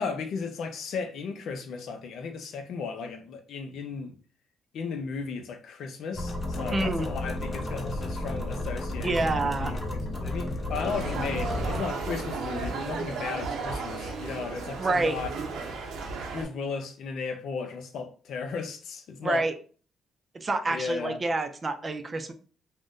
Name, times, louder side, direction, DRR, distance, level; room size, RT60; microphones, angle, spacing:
voice 1, 0.0-4.2 4.7-15.3 16.3-19.5 20.7-21.2, left 5 dB, 75° left, 0.5 m, -35 dB
sound 1, 6.1-11.8, left 1 dB, 35° left, 0.7 m, -32 dB
voice 2, 6.7-7.1 9.0-9.7 14.8-15.2 19.2-19.5 20.3-22.3, right 2 dB, 30° right, 0.4 m, -27 dB
sound 2, 10.8-16.4, right 3 dB, 85° right, 0.6 m, -34 dB
2.5 x 2.1 x 3.6 m
cardioid pair, 90°, 0 cm